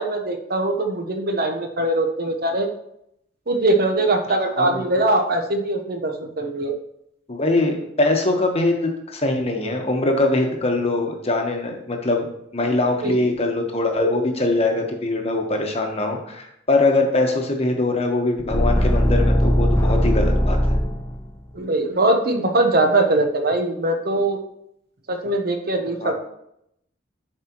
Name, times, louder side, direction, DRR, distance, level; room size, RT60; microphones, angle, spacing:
voice 1, 0.0-2.7 3.5-6.7 13.0-13.1 21.5-24.4 25.1-26.1, right 2 dB, 50° right, 5 dB, 1.0 m, -21 dB
voice 2, 7.3-12.3 12.5-20.8 26.0-26.1, left 2 dB, 35° left, 3 dB, 1.1 m, -22 dB
sound 1, 18.5-21.3, equal, 15° left, 0.6 m, -19 dB
11.0 x 4.7 x 3.0 m, 0.77 s
head